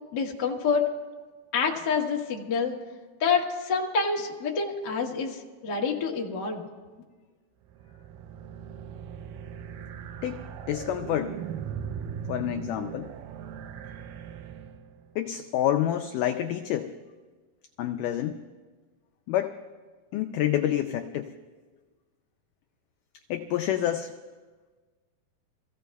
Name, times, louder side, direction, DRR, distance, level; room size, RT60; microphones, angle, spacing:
voice 1, 0.1-0.9 1.5-2.7 3.2-5.4 5.6-6.7, left 5 dB, 60° left, -1 dB, 1.1 m, -27 dB
sound 1, 7.7-15.1, right 7 dB, 80° right, 2.0 m, -39 dB
voice 2, 10.7-11.4 12.3-13.1 15.2-16.9 17.8-18.4 19.3-19.5 20.1-21.3 23.3-24.1, left 11 dB, 85° left, 6 dB, 1.8 m, -28 dB
26.5 x 15.5 x 2.3 m, 1.4 s
omnidirectional pair, 4.3 m